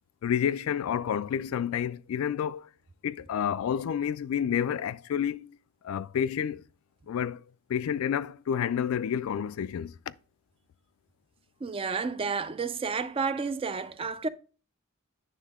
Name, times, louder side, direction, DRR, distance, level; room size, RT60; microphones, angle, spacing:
voice 1, 0.2-2.7 3.0-5.5 5.8-6.6 7.1-7.4 7.7-10.1, left 8 dB, 85° left, 0.3 m, -29 dB
voice 2, 11.6-14.3, right 5 dB, 25° right, 0.3 m, -31 dB
9.3 x 3.5 x 3.6 m
head